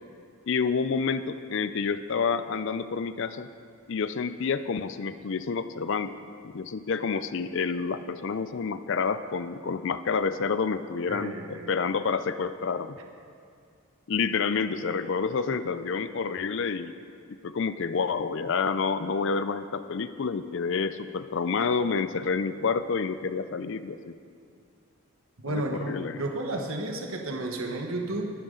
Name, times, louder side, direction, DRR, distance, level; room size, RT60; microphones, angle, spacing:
voice 1, 0.5-3.5 3.9-6.2 6.4-13.0 14.1-16.9 17.4-24.1 25.5-26.2, left 5 dB, 55° left, 12 dB, 0.4 m, -29 dB
voice 2, 11.1-11.7 25.4-28.3, right 2 dB, 70° right, 2 dB, 1.2 m, -32 dB
23.0 x 10.5 x 3.8 m, 2.4 s
head